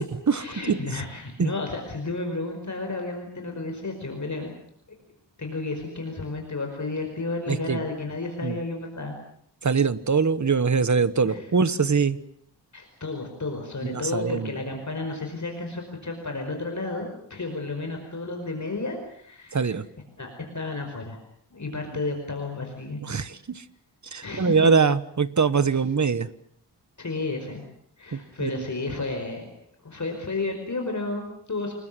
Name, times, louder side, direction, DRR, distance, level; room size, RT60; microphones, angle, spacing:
voice 1, 0.3-4.5 5.4-9.2 11.2-11.5 12.7-19.7 20.2-21.2 21.5-23.0 24.2-24.6 25.7-25.8 27.0-27.6 28.0-29.5 29.8-31.7, left 3 dB, 45° left, 4 dB, 5.1 m, -32 dB
voice 2, 7.5-7.8 8.4-8.6 9.6-12.2 13.8-14.5 19.5-19.8 23.0-23.6 24.1-26.3 28.1-28.7, right 5 dB, 45° right, 14 dB, 1.3 m, -23 dB
28.5 x 21.0 x 7.7 m, 0.65 s
wide cardioid pair, 125°, 42 cm